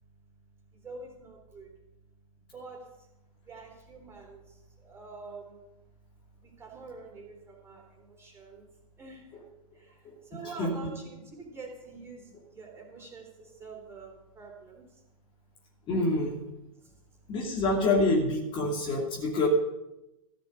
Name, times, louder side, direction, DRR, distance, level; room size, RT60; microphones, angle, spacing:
voice 1, 0.8-1.7 2.5-3.1 3.4-5.7 6.4-8.7 9.0-9.3 9.7-14.9 16.8-16.9, right 4 dB, 15° right, 0 dB, 3.7 m, -46 dB
voice 2, 10.4-10.9 15.9-16.4 17.3-19.5, left 2 dB, 30° left, -1 dB, 2.5 m, -27 dB
14.0 x 6.0 x 9.1 m, 0.92 s
figure-of-eight pair, 115°, 18 cm